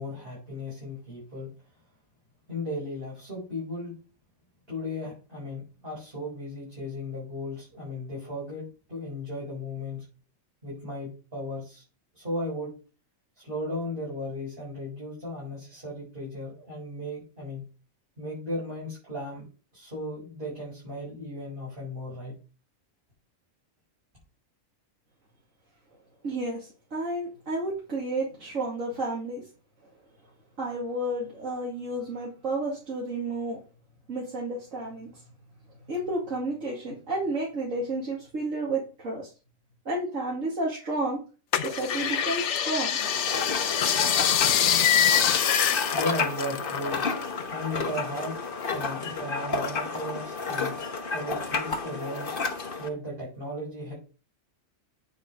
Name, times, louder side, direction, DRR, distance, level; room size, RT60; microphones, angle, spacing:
voice 1, 0.0-1.5 2.5-3.9 4.7-10.0 10.6-11.8 12.1-12.7 13.4-17.7 18.2-19.5 19.7-22.3 45.9-47.1 47.5-48.4 48.7-50.8 51.1-52.3 52.8-53.9, left 1 dB, 45° right, -7 dB, 5.7 m, -36 dB
voice 2, 26.2-29.4 30.6-33.6 34.1-35.1 35.9-39.3 39.9-41.2 41.6-43.0, right 2 dB, 75° right, -5 dB, 2.7 m, -31 dB
sound 1, 41.5-47.4 47.6-48.9 49.4-50.2 50.7-50.8, left 9 dB, 65° left, 1.0 m, -25 dB
sound 2, 43.0-52.9, left 4 dB, 45° left, 1.2 m, -31 dB
9.4 x 5.2 x 4.9 m, 0.35 s
omnidirectional pair, 1.4 m